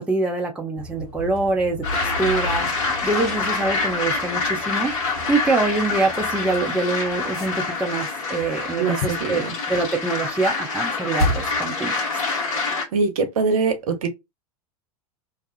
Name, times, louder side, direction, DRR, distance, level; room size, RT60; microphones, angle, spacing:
voice 1, 0.0-4.9 5.3-12.2, right 3 dB, 5° right, 0.4 m, -25 dB
sound 1, 0.8-8.1 8.3-9.4 10.3-10.4 11.2-11.7, left 1 dB, 65° left, 0.8 m, -32 dB
sound 2, 1.8-12.8, left 4 dB, 50° left, 1.2 m, -26 dB
voice 2, 8.8-9.5 12.4-14.1, right 4 dB, 60° right, 0.7 m, -24 dB
2.4 x 2.3 x 2.4 m
figure-of-eight pair, 90°, 20 cm